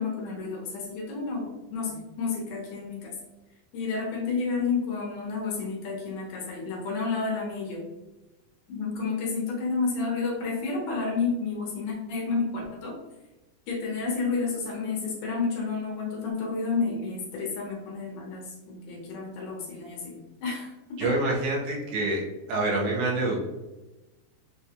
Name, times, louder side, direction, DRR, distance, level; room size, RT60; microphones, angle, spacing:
voice 1, 0.0-3.1 3.7-7.8 8.7-13.0 13.7-20.7 21.0-21.1, left 4 dB, 70° left, -2 dB, 2.2 m, -30 dB
voice 2, 21.0-22.2 22.5-23.4, right 2 dB, 85° right, -2 dB, 2.8 m, -26 dB
6.6 x 2.3 x 2.8 m, 1.1 s
omnidirectional pair, 4.4 m